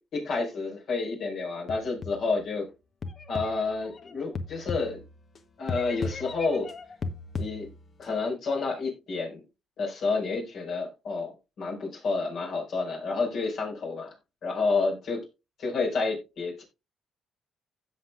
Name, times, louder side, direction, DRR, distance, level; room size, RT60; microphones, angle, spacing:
voice 1, 0.1-2.7 3.3-5.0 5.6-6.7 7.4-7.7 8.0-9.4 9.8-14.1 14.4-15.3 15.6-16.6, left 4 dB, 70° left, 0 dB, 5.2 m, -29 dB
sound 1, 1.7-2.4 3.0-5.4 5.7-8.0, left 3 dB, 45° left, 1.1 m, -37 dB
16.0 x 5.6 x 2.5 m, 0.26 s
cardioid pair, 90°, 0 cm